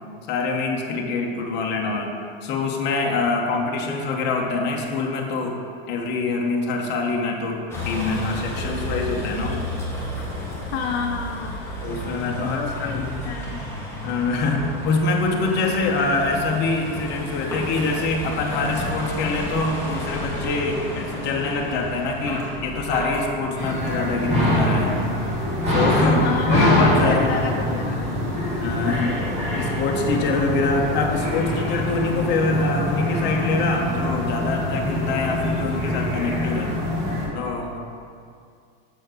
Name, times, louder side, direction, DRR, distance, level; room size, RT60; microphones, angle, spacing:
voice 1, 0.3-2.1 2.4-5.6 5.9-9.6 11.8-13.3 14.0-24.9 25.7-26.2 26.5-27.3 28.6-29.1 29.5-36.7 37.3-37.8, left 3 dB, 35° left, 0 dB, 1.1 m, -24 dB
Vehicle, 7.7-24.6, left 1 dB, 10° left, 1.4 m, -32 dB
voice 2, 10.7-11.6 12.4-13.0 13.2-13.6 25.9-26.6 27.1-28.1 28.9-29.1, left 6 dB, 85° left, 2 dB, 0.7 m, -29 dB
sound 1, 23.6-37.3, left 1 dB, 20° right, 1.7 m, -24 dB
7.0 x 4.3 x 6.5 m, 2.3 s
supercardioid pair, 155°, 30 cm